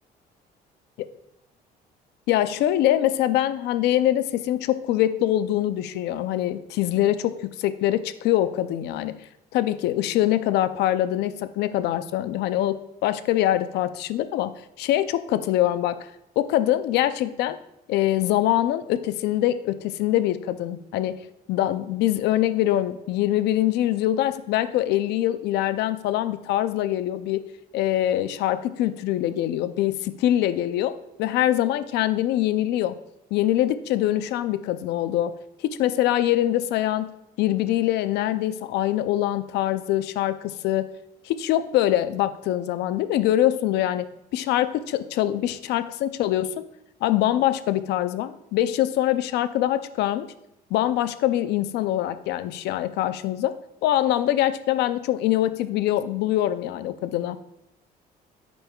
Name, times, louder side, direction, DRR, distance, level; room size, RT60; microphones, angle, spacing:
voice 1, 2.3-9.2 9.5-16.1 16.4-17.6 17.9-21.2 21.5-27.4 27.7-32.9 33.3-35.3 35.6-37.1 37.4-40.9 41.2-44.1 44.3-46.5 47.0-50.3 50.7-53.5 53.8-57.4, left 13 dB, 80° left, 12 dB, 0.5 m, -24 dB
13.5 x 5.3 x 2.3 m, 0.84 s
cardioid pair, 110°, 17 cm